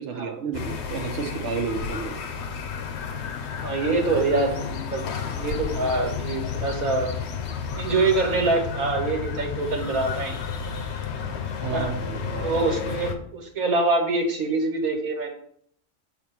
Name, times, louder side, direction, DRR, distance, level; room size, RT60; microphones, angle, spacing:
voice 1, 0.0-2.2 11.6-12.5, right 6 dB, 60° right, 4 dB, 1.0 m, -31 dB
sound 1, 0.5-13.1, left 6 dB, 60° left, 0.9 m, -32 dB
voice 2, 3.5-5.1 5.3-7.2 7.8-10.4 11.6-11.9 12.4-15.3, right 3 dB, 90° right, 2 dB, 1.8 m, -25 dB
6.8 x 2.9 x 5.8 m, 0.65 s
omnidirectional pair, 1.4 m